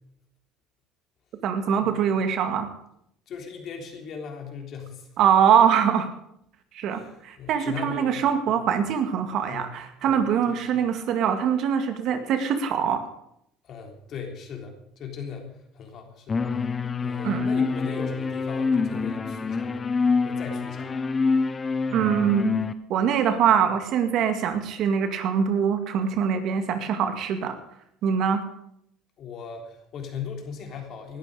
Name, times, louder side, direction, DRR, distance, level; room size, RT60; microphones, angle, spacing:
voice 1, 1.4-2.7 5.2-6.1 6.7-13.0 17.2-17.5 21.9-22.5 22.9-27.6 28.0-28.4, right 8 dB, 60° right, 7 dB, 2.2 m, -23 dB
voice 2, 3.3-5.2 6.9-8.3 8.5-8.7 9.5-9.8 10.0-10.9 13.6-19.8 20.2-20.9 29.2-31.2, left 6 dB, 50° left, 3 dB, 3.6 m, -39 dB
sound 1, 16.3-22.7, left 4 dB, 25° left, 1.0 m, -26 dB
19.5 x 12.0 x 5.1 m, 0.74 s
cardioid pair, 120°, 0 cm